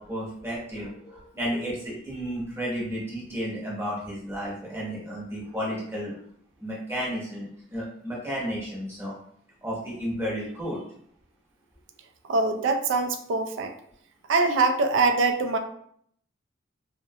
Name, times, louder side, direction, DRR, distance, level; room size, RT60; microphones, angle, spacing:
voice 1, 0.0-6.2 6.6-9.2 9.6-10.8, equal, 10° right, -5 dB, 0.7 m, -32 dB
voice 2, 12.3-13.7 14.3-15.6, right 3 dB, 70° right, 6 dB, 0.3 m, -23 dB
2.4 x 2.1 x 2.7 m, 0.66 s
head